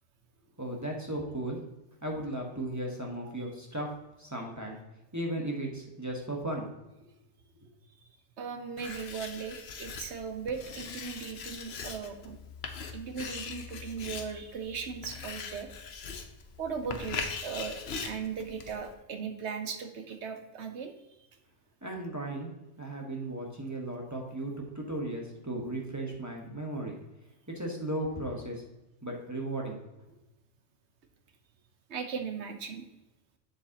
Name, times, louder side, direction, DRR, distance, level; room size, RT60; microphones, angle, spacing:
voice 1, 0.6-1.6 2.0-3.9 4.2-4.8 5.1-6.7 21.8-22.5 22.8-27.0 27.5-28.6 29.0-29.8, right 1 dB, 15° right, -1 dB, 1.2 m, -36 dB
voice 2, 8.4-12.4 12.9-15.7 16.6-20.9 31.9-32.8, right 6 dB, 70° right, 6 dB, 1.2 m, -38 dB
Writing, 8.8-18.9, left 5 dB, 60° left, 1.0 m, -41 dB
7.9 x 7.2 x 2.9 m, 0.98 s
omnidirectional pair, 1.2 m